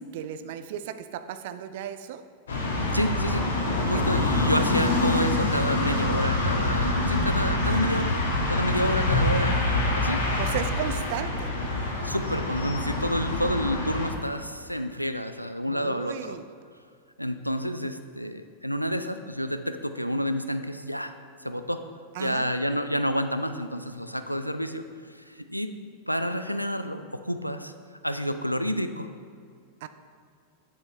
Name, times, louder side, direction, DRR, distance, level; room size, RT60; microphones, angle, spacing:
voice 1, 0.1-2.2 3.8-4.1 7.6-8.5 10.4-11.5 15.7-16.5 22.1-22.5 29.8-29.9, right 9 dB, 50° right, 11 dB, 0.4 m, -35 dB
sound 1, 2.5-14.1, left 2 dB, 65° left, 1.2 m, -26 dB
voice 2, 2.9-3.5 3.9-8.2 8.5-9.6 9.9-10.2 12.0-16.4 17.2-21.1 21.4-21.8 22.2-24.8 25.3-25.7 26.1-27.7 28.0-29.1, equal, 90° left, 9 dB, 0.3 m, -29 dB
7.9 x 6.9 x 3.2 m, 2.3 s
figure-of-eight pair, 90°, 0 cm